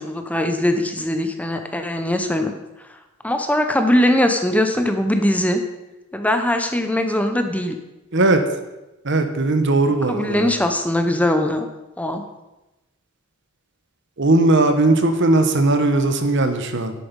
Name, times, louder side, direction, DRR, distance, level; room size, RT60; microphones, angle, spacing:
voice 1, 0.0-2.5 3.2-5.6 6.1-7.7 10.1-11.7 12.0-12.2, left 1 dB, 5° left, 6 dB, 0.8 m, -21 dB
voice 2, 9.0-10.5 14.2-16.9, right 2 dB, 60° right, 8 dB, 1.1 m, -18 dB
10.5 x 8.5 x 5.3 m, 1.0 s
head